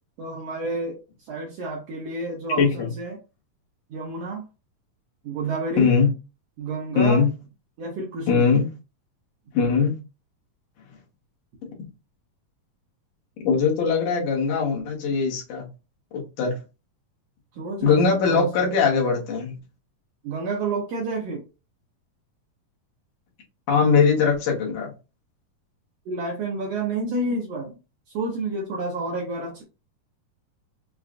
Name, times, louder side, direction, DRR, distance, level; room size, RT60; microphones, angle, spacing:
voice 1, 0.2-1.0 1.3-3.2 3.9-4.4 5.2-6.0 6.6-7.2 7.8-8.5 17.5-18.5 20.2-21.4 26.1-27.7 28.1-29.6, right 3 dB, 75° right, 1.5 m, -29 dB
voice 2, 2.6-2.9 5.8-6.1 7.0-7.3 8.3-8.7 9.5-9.9 13.4-15.7 16.1-16.5 17.8-19.5 23.7-24.9, left 5 dB, 70° left, 2.5 m, -21 dB
6.1 x 2.4 x 2.4 m
omnidirectional pair, 3.9 m